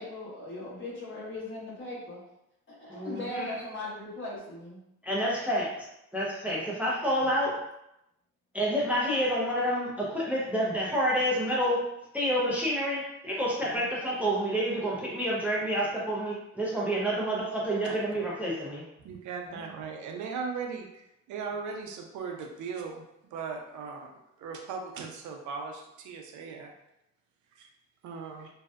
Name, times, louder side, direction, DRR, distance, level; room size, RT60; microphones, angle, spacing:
voice 1, 0.0-2.2 2.7-4.8 6.5-6.7 7.2-7.4 13.6-13.9 19.5-19.7, left 2 dB, 40° left, -6 dB, 1.1 m, -39 dB
voice 2, 2.9-3.4 5.0-5.7 6.1-7.6 8.5-11.8 12.1-18.8, equal, 5° right, -5 dB, 0.5 m, -28 dB
voice 3, 19.0-20.9 21.3-24.1 24.4-26.7 27.6-27.7 28.0-28.5, right 5 dB, 75° right, 2 dB, 0.5 m, -38 dB
2.6 x 2.1 x 2.3 m, 0.85 s
cardioid pair, 90°, 30 cm